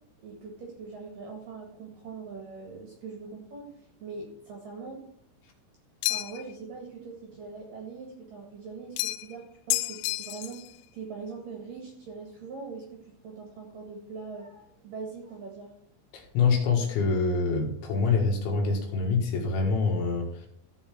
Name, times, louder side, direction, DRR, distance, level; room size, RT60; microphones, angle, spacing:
voice 1, 0.2-5.0 6.0-15.7, right 4 dB, 55° right, 1 dB, 2.6 m, -42 dB
sound 1, 6.0-6.5 9.0-9.4 9.7-10.7, left 18 dB, 90° left, 2.6 m, -30 dB
voice 2, 16.1-20.5, left 4 dB, 70° left, 2 dB, 3.7 m, -25 dB
14.5 x 5.5 x 6.0 m, 0.67 s
omnidirectional pair, 5.9 m